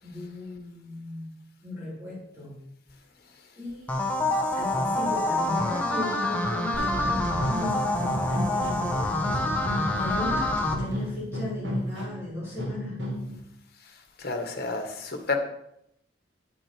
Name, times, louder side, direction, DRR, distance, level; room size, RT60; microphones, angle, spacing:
voice 1, 0.0-2.6 3.6-13.0, left 2 dB, 15° right, -8 dB, 4.0 m, -36 dB
sound 1, 3.9-10.7, left 1 dB, 10° left, 1.1 m, -27 dB
sound 2, 6.7-13.4, equal, 75° right, 2.1 m, -32 dB
voice 2, 14.2-15.4, left 3 dB, 55° left, 4 dB, 1.7 m, -30 dB
9.8 x 8.8 x 4.7 m, 0.78 s
head